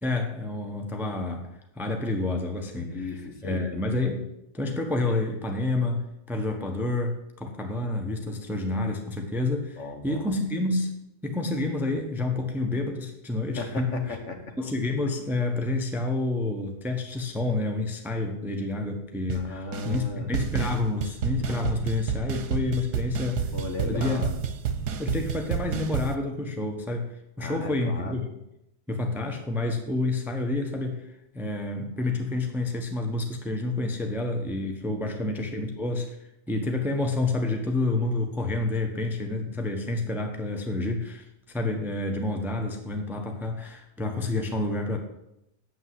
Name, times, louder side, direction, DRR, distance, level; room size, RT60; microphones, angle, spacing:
voice 1, 0.0-1.5 1.7-3.1 3.4-4.2 4.5-10.9 11.2-14.2 14.6-23.4 23.9-24.2 25.0-27.1 27.4-28.3 28.9-36.2 36.5-45.0, left 2 dB, ahead, 4 dB, 1.1 m, -29 dB
voice 2, 2.7-3.7 9.8-10.3 13.6-14.5 19.3-20.3 23.5-24.3 27.4-28.1 34.9-35.6, left 3 dB, 50° left, 5 dB, 1.6 m, -36 dB
sound 1, 19.3-19.4 19.7-20.1 20.3-26.1, right 7 dB, 75° right, 1.4 m, -30 dB
9.0 x 8.1 x 7.7 m, 0.84 s
omnidirectional pair, 1.7 m